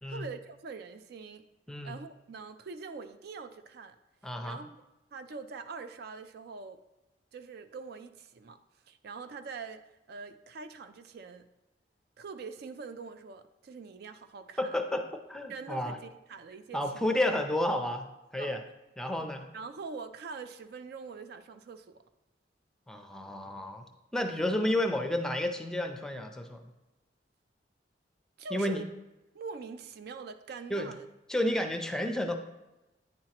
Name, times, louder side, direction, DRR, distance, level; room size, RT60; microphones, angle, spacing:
voice 1, 0.1-1.4 1.8-4.0 4.4-4.8 5.1-6.8 7.3-8.6 8.9-9.8 10.1-11.5 12.2-14.7 15.5-17.1 17.5-17.6 18.4-18.5 19.1-19.3 19.5-22.0 28.4-28.9 29.3-31.1, right 4 dB, 60° right, 9 dB, 0.4 m, -44 dB
voice 2, 4.2-4.6 14.6-15.0 15.3-16.0 16.7-18.1 18.3-18.6 19.0-19.5 22.9-23.8 24.1-26.7 28.5-28.8 30.7-30.9 31.3-32.3, left 1 dB, 5° left, 5 dB, 0.5 m, -31 dB
9.5 x 4.4 x 2.9 m, 0.99 s
head